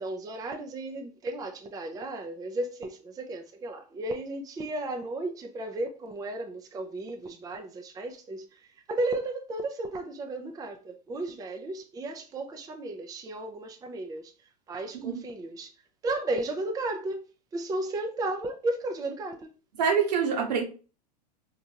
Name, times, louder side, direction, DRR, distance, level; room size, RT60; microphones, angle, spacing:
voice 1, 0.0-14.3 14.7-15.7 16.0-17.3 17.5-19.5, right 2 dB, 15° right, 0.5 m, -34 dB
voice 2, 19.8-20.6, right 6 dB, 80° right, 1.1 m, -25 dB
4.2 x 2.5 x 2.8 m
hypercardioid pair, 105°, 21 cm